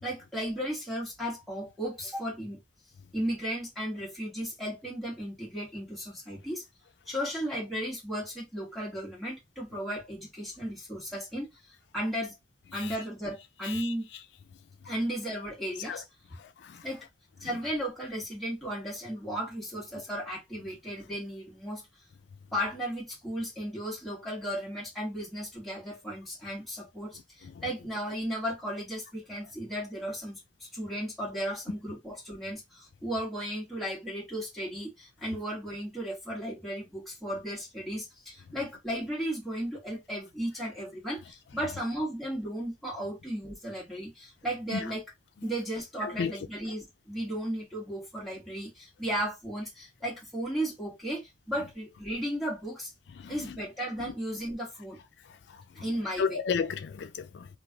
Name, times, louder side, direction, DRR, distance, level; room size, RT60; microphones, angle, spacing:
voice 1, 0.0-2.6 3.1-6.6 7.1-11.5 11.9-12.4 12.7-14.1 14.8-16.0 16.8-17.1 17.4-21.8 22.5-45.0 45.4-52.9 53.3-55.0 55.7-56.4, equal, ahead, 1.4 m, -35 dB
voice 2, 16.4-16.8 44.7-44.8 46.2-46.3 53.2-53.4 56.2-57.5, left 6 dB, 70° left, 0.4 m, -32 dB
3.1 x 2.4 x 2.3 m
head